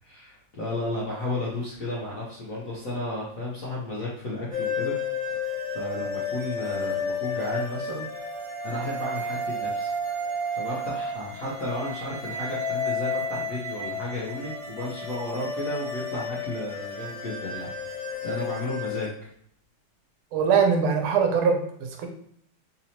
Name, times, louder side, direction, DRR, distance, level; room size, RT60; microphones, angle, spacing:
voice 1, 0.0-4.9 5.3-8.0 8.6-9.9 10.5-19.3, left 1 dB, 55° left, -6 dB, 0.9 m, -33 dB
sound 1, 4.5-19.1, left 2 dB, 50° right, 1.2 m, -32 dB
voice 2, 20.3-22.1, right 6 dB, 85° right, 3 dB, 1.6 m, -22 dB
3.9 x 2.8 x 2.8 m, 0.64 s
omnidirectional pair, 2.3 m